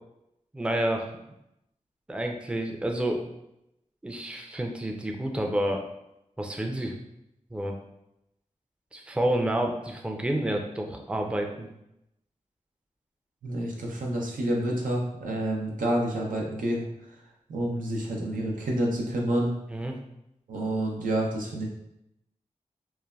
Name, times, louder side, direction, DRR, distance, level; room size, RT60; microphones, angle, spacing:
voice 1, 0.5-1.1 2.1-3.2 4.0-5.8 6.4-6.9 7.5-7.8 8.9-11.7 19.7-20.0, right 1 dB, 10° right, 2 dB, 0.4 m, -29 dB
voice 2, 13.4-16.9 17.5-19.5 20.5-21.7, right 1 dB, 90° right, -2 dB, 0.5 m, -28 dB
3.2 x 2.1 x 2.3 m, 0.84 s
cardioid pair, 40°, 13 cm